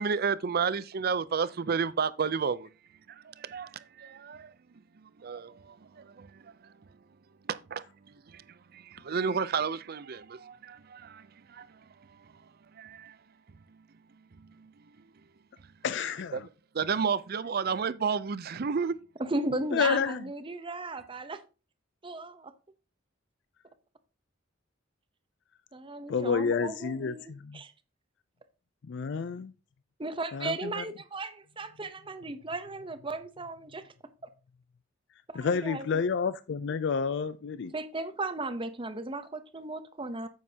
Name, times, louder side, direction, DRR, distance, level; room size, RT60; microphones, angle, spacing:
voice 1, 0.0-2.7 3.1-4.5 5.0-6.7 7.5-8.4 8.7-11.8 12.8-13.2 14.4-14.7 16.3-16.4 16.7-19.0, right 6 dB, 50° right, 0.5 m, -32 dB
voice 2, 15.8-16.5 19.7-20.2 26.1-27.6 28.8-29.5 30.3-30.8 35.3-37.7, left 5 dB, 60° left, 0.4 m, -30 dB
voice 3, 19.2-21.4 22.0-22.5 25.7-27.7 30.0-33.9 35.3-36.0 37.7-40.3, right 2 dB, 25° right, 0.8 m, -36 dB
9.4 x 7.4 x 2.8 m
head